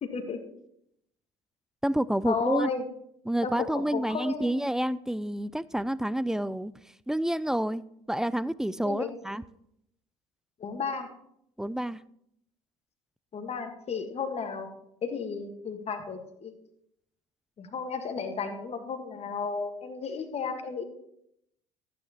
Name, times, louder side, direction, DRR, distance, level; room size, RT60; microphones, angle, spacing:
voice 1, 0.0-0.5 2.2-2.8 3.4-4.5 8.8-9.1 10.6-11.1 13.3-14.7 15.0-16.5 17.6-20.8, left 5 dB, 35° left, 1.6 m, -33 dB
voice 2, 1.8-2.7 3.3-6.7 7.1-7.8 8.1-9.4 11.6-12.0, right 1 dB, 5° right, 0.3 m, -29 dB
14.0 x 9.4 x 3.0 m
figure-of-eight pair, 60°, 18 cm